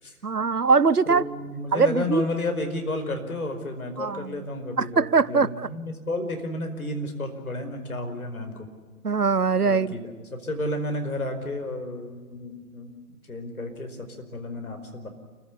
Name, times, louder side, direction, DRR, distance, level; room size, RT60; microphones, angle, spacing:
voice 1, 0.2-1.2 1.7-2.2 4.0-4.3 4.8-5.7 9.0-9.9, right 5 dB, 90° right, 19 dB, 0.9 m, -22 dB
voice 2, 1.0-8.7 9.6-15.1, left 2 dB, 70° left, 5 dB, 5.1 m, -32 dB
28.0 x 15.5 x 8.6 m, 1.5 s
figure-of-eight pair, 135°, 45 cm